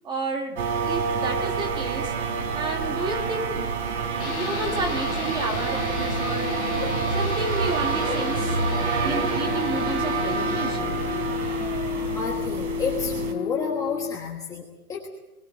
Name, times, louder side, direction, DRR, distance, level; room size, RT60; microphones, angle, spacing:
voice 1, 0.0-2.1 2.5-3.7 4.2-6.6 7.1-8.6 9.0-10.9, right 3 dB, 10° right, 3 dB, 1.6 m, -31 dB
sound 1, 0.6-13.3, right 5 dB, 50° right, 3.6 m, -27 dB
sound 2, 4.2-14.1, left 7 dB, 50° left, 1.4 m, -32 dB
voice 2, 12.2-15.1, left 5 dB, 10° left, -1 dB, 1.3 m, -31 dB
21.5 x 16.5 x 8.2 m, 0.94 s
hypercardioid pair, 150°, 45 cm